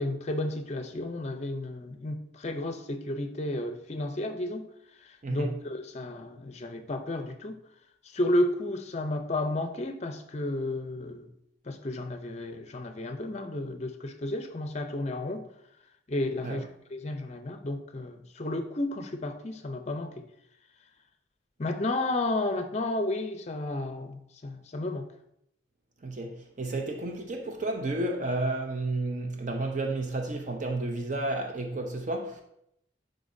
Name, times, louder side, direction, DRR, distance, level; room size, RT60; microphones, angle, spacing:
voice 1, 0.0-4.7 5.3-7.6 8.1-11.3 11.7-15.5 16.1-20.3 21.6-25.1, left 1 dB, 35° left, 0.6 m, -32 dB
voice 2, 5.2-5.5 16.4-16.6 26.0-32.4, right 2 dB, 40° right, 0.5 m, -31 dB
10.0 x 3.8 x 2.6 m
head